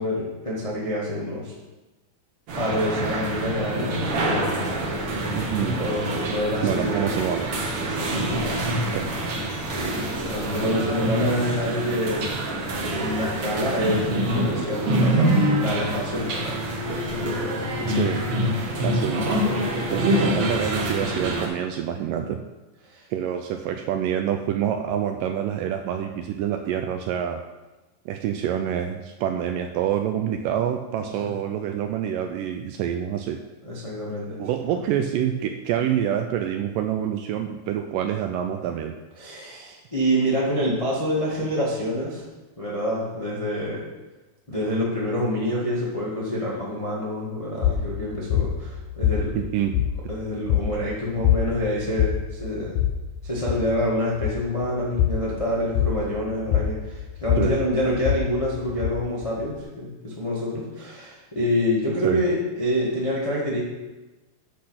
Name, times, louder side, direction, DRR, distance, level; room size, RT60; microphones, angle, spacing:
voice 1, 0.0-1.5 2.5-5.3 5.7-7.1 7.8-9.0 9.7-12.3 12.7-16.6 17.1-17.6 22.8-23.0 31.2-31.3 33.6-34.7 39.2-42.2 42.6-43.8 44.5-49.4 50.1-52.7 53.2-63.6, equal, 55° left, -6 dB, 0.3 m, -27 dB
sound 1, 2.5-21.5, right 1 dB, 60° right, 1.6 m, -26 dB
voice 2, 5.2-5.8 6.3-6.4 6.6-7.5 8.9-9.1 17.9-18.2 18.8-19.4 19.9-22.4 23.1-27.4 28.1-33.4 34.4-38.9 49.3-49.8 57.4-57.6 62.0-62.2, right 10 dB, 80° right, 5 dB, 1.9 m, -27 dB
sound 2, 47.6-59.6, left 10 dB, 80° left, 1.9 m, -26 dB
8.6 x 6.2 x 5.7 m, 1.1 s
omnidirectional pair, 4.3 m